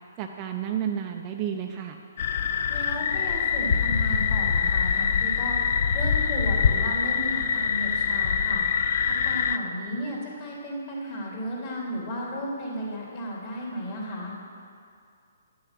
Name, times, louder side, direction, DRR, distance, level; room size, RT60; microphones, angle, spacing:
voice 1, 0.2-2.0, right 9 dB, 25° right, 3 dB, 0.5 m, -31 dB
sound 1, 2.2-9.6, left 7 dB, 50° left, 0.5 m, -24 dB
voice 2, 2.7-8.7 9.1-14.3, equal, 30° left, -4 dB, 2.8 m, -34 dB
10.5 x 6.6 x 7.4 m, 2.4 s
hypercardioid pair, 165°, 0 cm